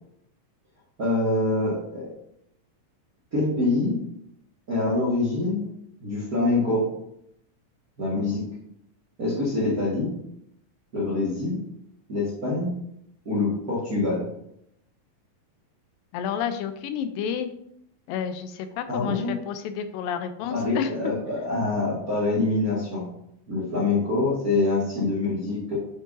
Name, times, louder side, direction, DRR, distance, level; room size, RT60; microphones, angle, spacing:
voice 1, 1.0-2.1 3.3-4.0 4.7-5.7 6.0-6.9 8.0-8.4 9.2-10.1 10.9-11.6 12.1-12.8 13.2-14.3 18.9-19.4 20.5-23.1 23.5-25.8, left 2 dB, 40° right, -7 dB, 1.4 m, -25 dB
voice 2, 16.1-17.5 18.1-20.9, left 8 dB, 85° left, 9 dB, 2.3 m, -30 dB
9.3 x 6.3 x 2.6 m, 0.76 s
omnidirectional pair, 4.0 m